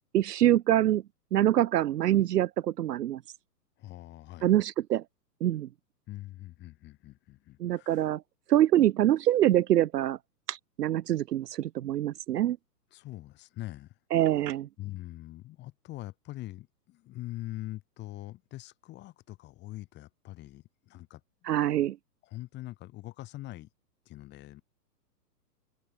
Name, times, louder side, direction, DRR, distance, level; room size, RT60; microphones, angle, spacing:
voice 1, 0.1-1.0 1.3-3.2 4.4-5.0 5.4-5.7 7.6-8.2 8.5-10.2 10.5-12.6 14.1-14.7 21.5-22.0, right 12 dB, 70° right, 0.8 m, -25 dB
voice 2, 3.8-4.6 6.1-8.1 12.9-14.0 14.8-21.2 22.2-23.7 24.1-24.6, left 16 dB, 20° left, 7.4 m, -43 dB
hypercardioid pair, 160°, 49 cm